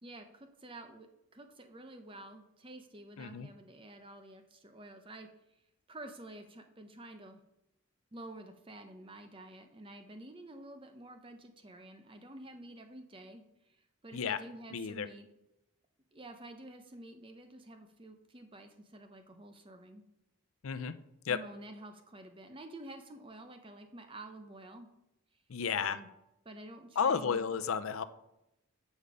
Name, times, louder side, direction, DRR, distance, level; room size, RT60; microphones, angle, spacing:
voice 1, 0.0-5.3 5.9-7.4 8.1-15.3 16.1-20.0 21.3-24.9 25.7-26.1 26.4-27.4, right 1 dB, 25° right, 6 dB, 0.7 m, -50 dB
voice 2, 3.2-3.5 14.1-14.4 14.7-15.1 20.6-20.9 21.3-21.4 25.5-26.0 27.0-28.0, left 6 dB, 80° left, 12 dB, 0.5 m, -32 dB
8.6 x 5.3 x 4.9 m, 0.87 s
head